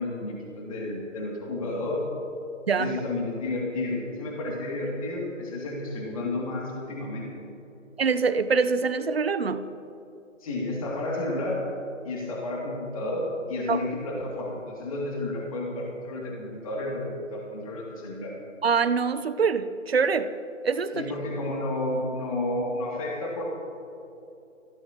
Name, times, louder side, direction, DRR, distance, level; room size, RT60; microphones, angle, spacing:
voice 1, 0.0-2.1 2.8-7.5 10.4-11.6 12.0-17.0 17.3-18.3 20.9-23.5, left 2 dB, 25° left, -3 dB, 2.7 m, -31 dB
voice 2, 2.7-3.0 8.0-9.6 13.7-13.8 18.6-20.3 20.6-21.1, right 5 dB, 50° right, 11 dB, 0.9 m, -24 dB
27.5 x 16.5 x 3.0 m, 2.8 s
figure-of-eight pair, 155°, 38 cm